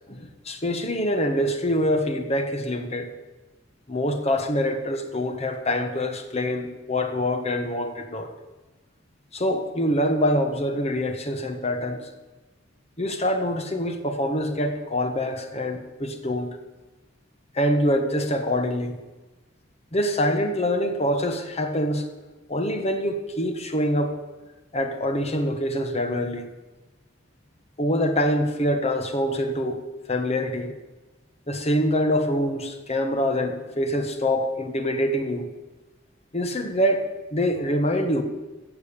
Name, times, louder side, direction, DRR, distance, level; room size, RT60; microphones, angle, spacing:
voice 1, 0.1-3.1 3.9-8.3 9.3-12.1 13.0-16.6 17.5-19.0 19.9-22.1 22.5-24.2 24.7-26.5 27.8-29.8 30.1-30.7 31.5-35.5 36.3-37.0 37.3-38.2, equal, 30° left, 7 dB, 1.4 m, -25 dB
15.5 x 7.2 x 8.6 m, 1.2 s
head